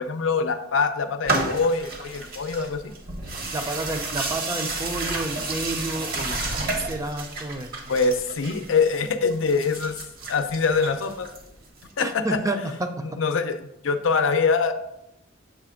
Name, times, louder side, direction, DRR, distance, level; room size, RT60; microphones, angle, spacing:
voice 1, 0.0-2.9 7.9-10.0 10.3-11.3 12.0-12.4 13.0-14.7, left 4 dB, 85° left, 9 dB, 0.5 m, -24 dB
sound 1, 1.2-11.8, right 2 dB, 50° right, 1.0 m, -31 dB
voice 2, 3.5-7.9 12.0-13.2, right 2 dB, 15° right, 6 dB, 0.5 m, -30 dB
6.8 x 3.3 x 4.9 m, 0.85 s
head